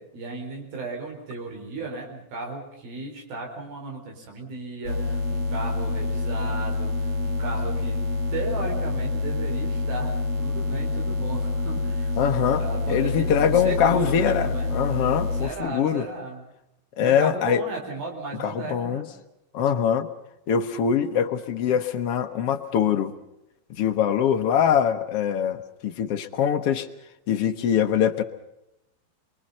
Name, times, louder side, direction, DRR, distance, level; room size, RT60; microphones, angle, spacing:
voice 1, 0.0-8.0 8.3-12.2 12.6-14.7 15.3-16.5 17.0-19.1, right 3 dB, 85° right, 1 dB, 6.4 m, -35 dB
sound 1, 4.9-15.5, left 3 dB, 45° right, 3.0 m, -27 dB
voice 2, 12.2-14.5 14.7-16.1 17.0-17.6 18.4-19.0 19.5-20.1 20.5-23.1 23.8-26.9 27.3-28.2, left 8 dB, 65° left, 7 dB, 1.4 m, -23 dB
27.5 x 23.0 x 5.6 m, 0.85 s
omnidirectional pair, 4.1 m